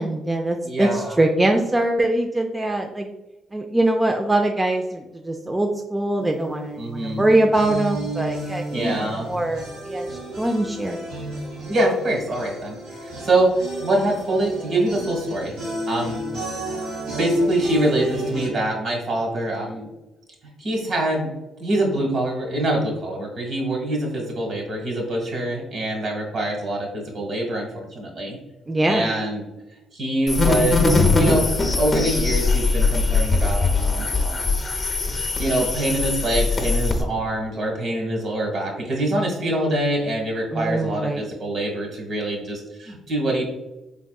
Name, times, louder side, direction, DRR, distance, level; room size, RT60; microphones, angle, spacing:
voice 1, 0.0-3.1 3.5-11.0 28.7-29.1 40.5-41.2, right 1 dB, 15° right, 3 dB, 0.3 m, -23 dB
voice 2, 0.6-1.2 6.8-7.3 8.7-9.3 11.6-12.7 13.0-15.6 15.9-16.2 16.7-19.9 20.6-21.3 21.6-28.4 28.9-29.4 29.9-31.5 31.7-34.1 35.4-43.4, right 1 dB, 55° right, 0 dB, 1.4 m, -24 dB
sound 1, 6.2-18.5, right 1 dB, 85° right, 1.5 m, -32 dB
sound 2, 30.3-37.0, left 3 dB, 30° left, 0.7 m, -21 dB
4.0 x 3.5 x 2.3 m, 1.0 s
cardioid pair, 90°, 0 cm